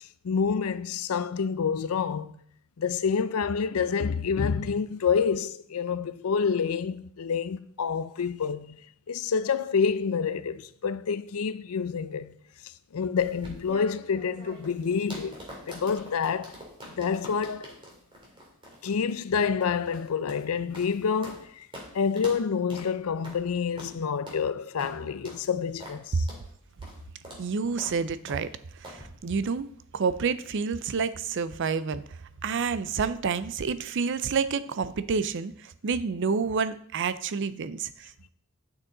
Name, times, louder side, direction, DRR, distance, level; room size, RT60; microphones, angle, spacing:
voice 1, 0.0-2.3 2.8-8.8 9.1-12.3 12.6-15.4 15.7-16.6 17.0-17.8 18.8-21.7 21.9-26.3, left 6 dB, 75° left, 0.5 m, -28 dB
sound 1, 13.2-21.4 21.7-21.9 22.2-22.4 22.7-22.9 23.2-23.4 23.8-23.9 24.3-24.4 24.8-24.9 25.2-25.4 25.8-26.0 26.3-26.4 26.8-27.0 27.2-27.4 27.8-28.0 28.3-28.4 28.8-29.0, equal, 25° right, 2.4 m, -44 dB
voice 2, 27.4-28.5 28.8-29.7 29.9-32.0 32.4-38.3, right 5 dB, 55° right, 0.5 m, -29 dB
9.1 x 6.1 x 3.9 m
head